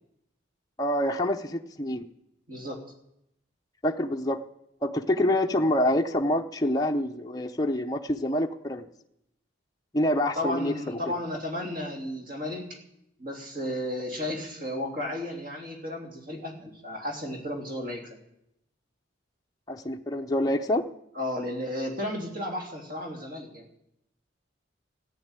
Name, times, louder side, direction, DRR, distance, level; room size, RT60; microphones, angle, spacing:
voice 1, 0.8-2.1 3.8-4.4 4.8-8.9 9.9-11.0 19.7-20.8, left 1 dB, 20° left, 2 dB, 0.6 m, -26 dB
voice 2, 2.5-2.8 10.4-12.8 13.2-18.1 21.1-23.8, left 1 dB, 45° right, 2 dB, 3.1 m, -33 dB
14.5 x 9.9 x 8.9 m, 0.80 s
head